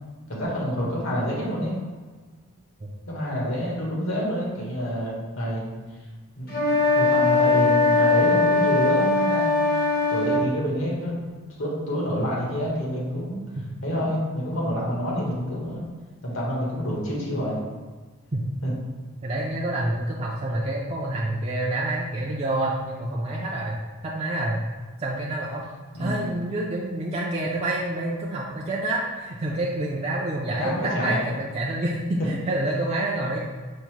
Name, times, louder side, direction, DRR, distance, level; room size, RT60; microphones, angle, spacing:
voice 1, 0.3-1.7 3.1-5.8 6.4-11.3 11.6-13.4 13.8-15.8 16.2-17.6 18.6-18.7 25.9-26.2 30.5-31.2, equal, 70° left, -4 dB, 1.3 m, -28 dB
sound 1, 6.5-10.5, left 3 dB, 40° left, 0.8 m, -20 dB
voice 2, 19.2-24.7 25.0-25.6 26.0-33.5, right 1 dB, 30° right, -4 dB, 0.4 m, -28 dB
5.3 x 2.1 x 4.6 m, 1.4 s
head